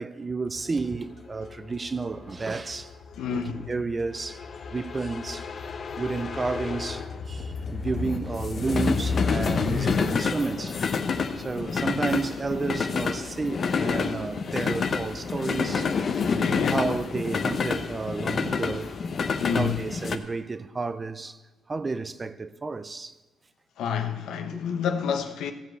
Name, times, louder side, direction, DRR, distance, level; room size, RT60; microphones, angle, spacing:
voice 1, 0.0-2.9 3.3-4.4 4.7-5.5 6.0-10.8 11.4-16.1 16.7-18.9 19.6-21.4 21.7-23.1 24.5-24.6, right 3 dB, 30° right, 0.5 m, -31 dB
sound 1, 0.7-20.2, left 5 dB, 45° left, 0.9 m, -29 dB
voice 2, 3.2-3.6 16.2-16.9 19.4-19.8 23.8-25.5, left 7 dB, 80° left, 1.0 m, -29 dB
15.0 x 5.2 x 7.9 m
cardioid pair, 90°, 0 cm